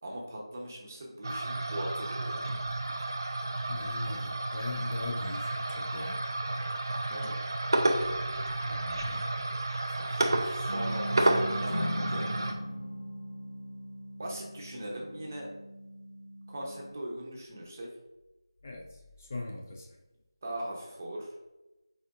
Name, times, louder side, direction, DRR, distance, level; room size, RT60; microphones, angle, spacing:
voice 1, 0.0-2.5 7.1-7.4 7.9-8.2 9.9-12.6 14.2-15.5 16.5-17.9 20.4-21.3, right 1 dB, 30° right, -1 dB, 0.9 m, -40 dB
sound 1, 1.2-12.5, right 2 dB, 55° right, 0.5 m, -31 dB
voice 2, 3.7-6.2 8.7-9.3 18.6-18.8 19.2-19.9, left 2 dB, 30° left, 0 dB, 0.5 m, -39 dB
Bass guitar, 10.7-16.9, equal, 45° left, 1.3 m, -41 dB
Acoustic guitar / Strum, 11.7-16.1, left 1 dB, 85° left, 0.7 m, -41 dB
4.2 x 2.5 x 4.7 m, 1.1 s
figure-of-eight pair, 170°, 3 cm